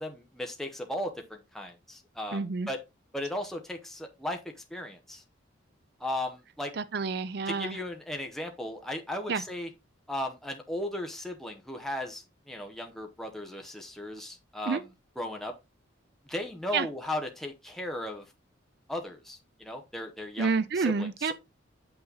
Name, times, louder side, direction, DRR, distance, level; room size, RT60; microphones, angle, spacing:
voice 1, 0.0-2.8 3.1-4.4 4.7-5.2 6.0-6.7 7.5-9.7 10.1-14.9 15.2-15.5 16.3-18.2 18.9-21.3, left 1 dB, ahead, 0.9 m, -36 dB
voice 2, 2.3-2.7 6.8-7.8 9.3-9.4 14.7-14.8 16.7-16.9 20.4-21.3, right 5 dB, 55° right, 0.5 m, -29 dB
7.6 x 5.8 x 3.9 m
head